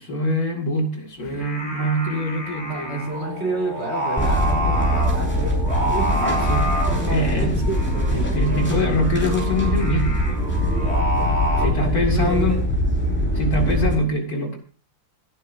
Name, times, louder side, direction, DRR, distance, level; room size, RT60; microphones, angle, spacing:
voice 1, 0.0-3.0 6.1-7.6 8.1-10.7 11.6-12.6 13.3-14.6, left 1 dB, 50° left, 3 dB, 2.8 m, -24 dB
Singing, 1.2-11.7, equal, 35° left, 4.8 m, -29 dB
voice 2, 2.6-6.4 6.7-8.5 8.9-9.1 10.6-12.6, right 3 dB, 35° right, 1 dB, 4.1 m, -31 dB
sound 1, 4.2-13.9, equal, 5° left, 5.4 m, -22 dB
28.0 x 9.5 x 2.7 m, 0.38 s
omnidirectional pair, 2.0 m